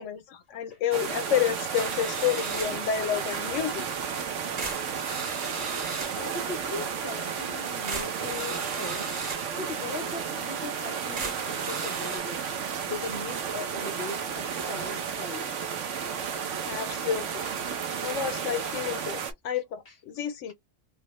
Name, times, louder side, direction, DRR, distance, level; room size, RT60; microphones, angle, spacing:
voice 1, 0.0-3.8 16.7-17.4 18.0-20.5, left 9 dB, 85° left, 1.0 m, -30 dB
sound 1, 0.9-19.3, right 7 dB, 75° right, 1.0 m, -33 dB
sound 2, 1.7-2.9 3.9-4.0 4.6-6.3 7.4-7.5 7.9-9.6 10.2-10.3 10.9-11.0 11.2-12.2, right 3 dB, 45° right, 1.0 m, -37 dB
voice 2, 6.1-9.2 9.6-12.4 12.9-15.6 16.2-16.3 16.9-17.0 19.1-19.2 19.9-20.0, left 3 dB, 60° left, 0.8 m, -39 dB
3.4 x 2.0 x 2.9 m
omnidirectional pair, 1.2 m